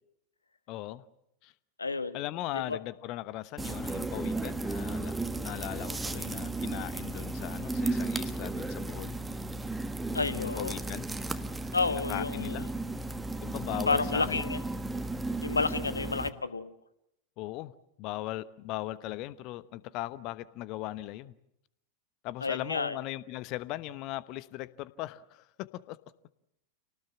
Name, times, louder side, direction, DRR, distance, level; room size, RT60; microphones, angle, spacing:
voice 1, 0.7-1.0 1.4-1.5 2.1-5.2 5.4-9.2 10.3-11.1 11.9-12.7 13.4-14.5 17.4-17.7 18.0-21.3 22.2-26.0, left 16 dB, 40° left, 17 dB, 1.0 m, -38 dB
voice 2, 1.8-2.2 2.5-2.8 10.1-10.7 11.7-12.6 13.9-14.6 15.4-16.8 22.4-23.0, left 4 dB, 80° left, 13 dB, 1.3 m, -30 dB
sound 1, 3.6-16.3, right 2 dB, 10° right, 1.3 m, -34 dB
28.5 x 19.0 x 7.4 m, 0.81 s
figure-of-eight pair, 90°, 0 cm